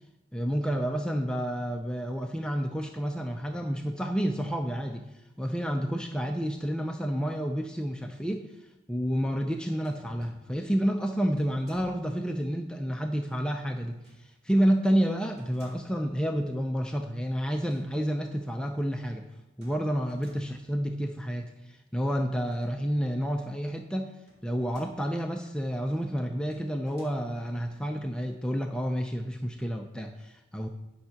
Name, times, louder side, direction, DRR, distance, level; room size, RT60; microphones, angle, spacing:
voice 1, 0.3-5.1 5.4-8.5 8.9-19.2 19.6-24.1 24.4-30.7, equal, 5° left, 3 dB, 0.4 m, -30 dB
sound 1, 9.7-10.4 11.4-12.3 13.9-14.4 15.4-16.1 17.5-17.9 18.2-18.3 19.6-20.7 22.3-23.1 24.3-25.2 26.3-27.2, equal, 55° right, 2.7 m, -58 dB
9.3 x 5.6 x 5.8 m, 0.98 s
head